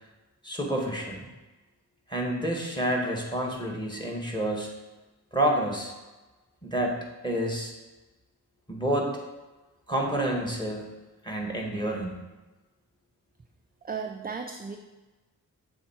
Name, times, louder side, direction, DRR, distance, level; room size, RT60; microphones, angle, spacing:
voice 1, 0.4-1.3 2.1-4.7 5.3-5.9 6.6-7.0 7.2-7.7 8.7-9.2 9.9-10.9 11.2-12.2, right 1 dB, 10° left, 0 dB, 1.7 m, -28 dB
voice 2, 13.8-14.8, right 5 dB, 25° right, 4 dB, 0.5 m, -35 dB
7.3 x 3.6 x 4.5 m, 1.2 s
cardioid pair, 45°, 40 cm